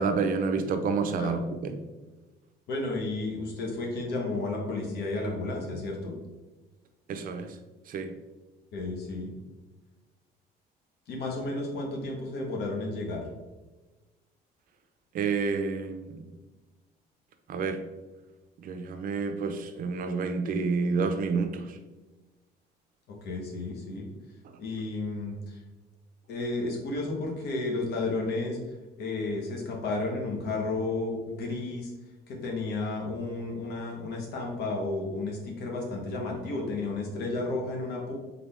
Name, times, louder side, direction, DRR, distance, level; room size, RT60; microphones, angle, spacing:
voice 1, 0.0-1.8 7.1-7.5 7.9-8.1 15.1-16.2 17.5-17.8 18.6-21.8, right 4 dB, 55° right, 8 dB, 0.6 m, -29 dB
voice 2, 2.7-6.1 8.7-9.3 11.1-13.2 23.2-24.1 24.6-25.6 26.3-28.6 29.0-31.9 32.3-38.1, left 2 dB, 70° left, 1 dB, 1.3 m, -32 dB
3.9 x 3.7 x 3.4 m, 1.2 s
cardioid pair, 110°, 17 cm